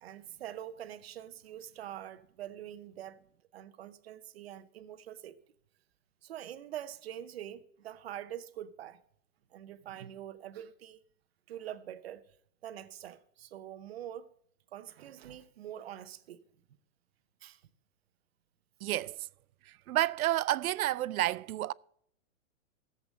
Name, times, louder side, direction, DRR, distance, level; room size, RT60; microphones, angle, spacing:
voice 1, 0.0-3.2 3.5-5.4 6.2-9.0 9.5-11.0 11.5-12.2 12.6-14.3 14.7-16.4 17.4-17.6 18.9-19.0, right 11 dB, 45° right, 0.8 m, -44 dB
voice 2, 18.8-19.3 19.7-21.7, right 14 dB, 90° right, 0.6 m, -30 dB
14.5 x 8.0 x 5.2 m
hypercardioid pair, 175°, 41 cm